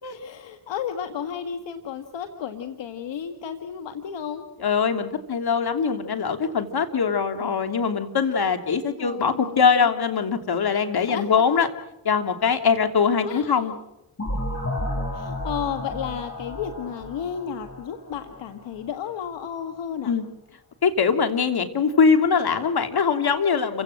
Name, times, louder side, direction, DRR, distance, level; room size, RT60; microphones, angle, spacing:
voice 1, 0.1-4.5 9.0-9.9 11.0-11.5 13.2-13.7 15.1-20.2, left 8 dB, 75° left, 7 dB, 1.7 m, -33 dB
voice 2, 4.6-11.7 12.0-13.8 20.0-20.2 20.8-23.8, left 6 dB, 55° left, 7 dB, 3.0 m, -22 dB
sound 1, 14.2-18.9, left 1 dB, 35° left, 7.5 m, -32 dB
29.5 x 17.0 x 7.7 m, 0.91 s
supercardioid pair, 50°, 44 cm